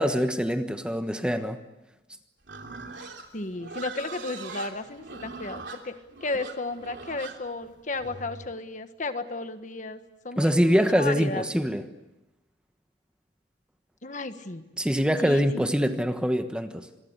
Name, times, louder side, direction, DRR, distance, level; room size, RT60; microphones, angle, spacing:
voice 1, 0.0-1.6 10.4-11.8 14.8-16.9, equal, 5° right, 7 dB, 1.2 m, -24 dB
Livestock farm animals working animals, 2.4-8.5, right 3 dB, 75° right, 3.2 m, -41 dB
voice 2, 3.3-5.9 6.2-10.0 10.2-11.4 14.0-14.6 15.2-15.6, left 2 dB, 45° left, 9 dB, 1.5 m, -34 dB
27.0 x 22.5 x 8.2 m, 1.0 s
head